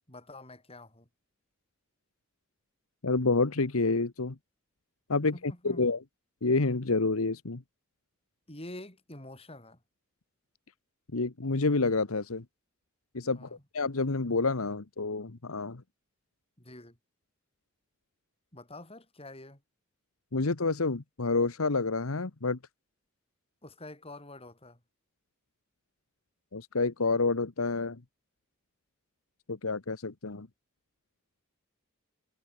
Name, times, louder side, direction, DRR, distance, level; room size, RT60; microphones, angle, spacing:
voice 1, 0.1-1.1 5.3-5.9 8.5-9.8 13.3-13.6 16.6-17.0 18.5-19.6 23.6-24.8, left 1 dB, 25° left, 8.0 m, -47 dB
voice 2, 3.0-4.3 5.1-6.0 6.4-7.6 11.1-12.4 13.1-13.5 13.7-15.8 20.3-22.6 26.5-28.0 29.5-30.5, left 3 dB, 80° left, 1.2 m, -28 dB
head